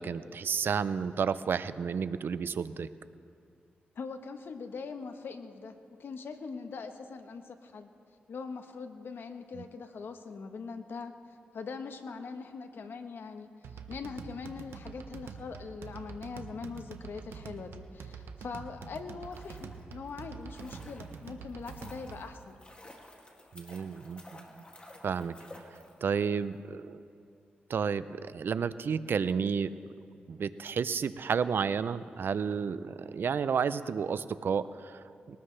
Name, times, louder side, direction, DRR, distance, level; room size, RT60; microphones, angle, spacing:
voice 1, 0.0-2.9 23.5-24.6 25.0-25.3 26.0-27.0 27.7-29.7 30.3-35.4, right 6 dB, 65° right, 14 dB, 0.5 m, -31 dB
voice 2, 3.9-5.7 6.0-7.9 8.3-11.1 11.5-22.6, left 5 dB, 70° left, 7 dB, 1.1 m, -42 dB
sound 1, 13.6-22.4, right 6 dB, 85° right, 0.9 m, -46 dB
sound 2, 19.1-26.3 26.5-26.6, left 1 dB, 30° left, 2.4 m, -53 dB
21.0 x 18.5 x 3.3 m, 2.5 s
cardioid pair, 65°, 4 cm